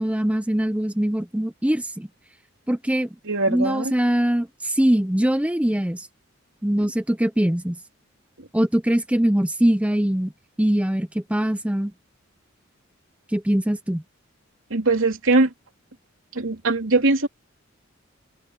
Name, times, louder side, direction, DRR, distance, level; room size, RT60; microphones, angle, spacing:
voice 1, 0.0-2.1 2.7-3.1 3.5-6.1 6.6-7.8 8.5-10.3 10.6-11.9 13.3-14.0, right 1 dB, 5° right, 0.6 m, -22 dB
voice 2, 3.2-3.9 14.7-15.5 16.3-17.3, right 3 dB, 70° right, 3.0 m, -21 dB
head